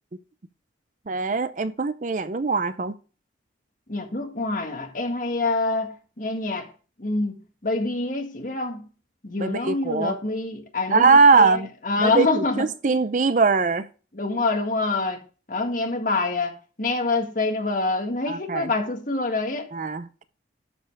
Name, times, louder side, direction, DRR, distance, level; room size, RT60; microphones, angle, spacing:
voice 1, 1.1-2.9 9.4-10.1 10.9-11.7 12.0-13.9 18.3-18.7 19.7-20.2, right 4 dB, 45° right, 0.5 m, -21 dB
voice 2, 3.9-6.7 7.0-8.8 9.2-12.7 14.1-15.2 15.5-19.7, left 3 dB, 45° left, 1.7 m, -26 dB
12.0 x 5.3 x 4.7 m
head